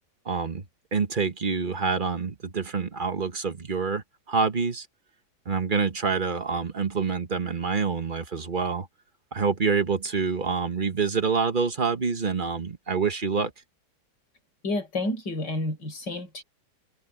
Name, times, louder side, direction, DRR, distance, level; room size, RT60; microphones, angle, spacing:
voice 1, 0.2-0.6 0.9-4.9 5.4-8.9 9.3-13.5, right 5 dB, 30° right, 1.3 m, -27 dB
voice 2, 14.6-16.4, left 2 dB, 90° left, 5.7 m, -30 dB
omnidirectional pair, 1.8 m